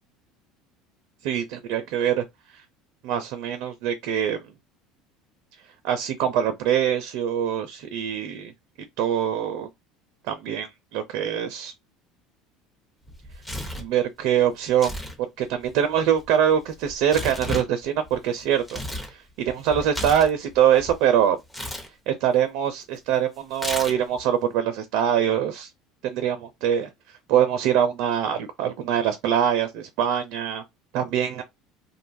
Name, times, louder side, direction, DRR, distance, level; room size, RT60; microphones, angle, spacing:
voice 1, 1.2-2.2 3.0-4.4 5.8-8.5 9.0-9.7 10.3-11.7 13.8-14.9 15.4-18.8 19.1-21.4 22.1-25.7 26.0-26.9 27.3-30.6 30.9-31.4, right 9 dB, 70° right, 0.4 m, -23 dB
Tearing, 13.1-13.9 14.7-15.2 15.4-19.1 19.5-21.0 21.5-21.9 23.5-24.2, left 1 dB, 15° left, 0.8 m, -34 dB
2.6 x 2.3 x 2.5 m
supercardioid pair, 95°, 0 cm